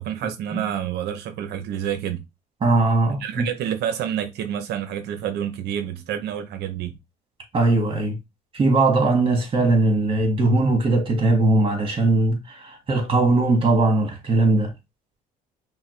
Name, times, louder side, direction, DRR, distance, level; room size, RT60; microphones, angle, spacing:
voice 1, 0.0-2.2 3.1-6.9, right 10 dB, 75° right, 0.7 m, -28 dB
voice 2, 2.6-3.4 7.5-8.2 8.5-14.7, right 2 dB, 30° right, 1.8 m, -20 dB
5.6 x 2.2 x 3.2 m
cardioid pair, 110°, 17 cm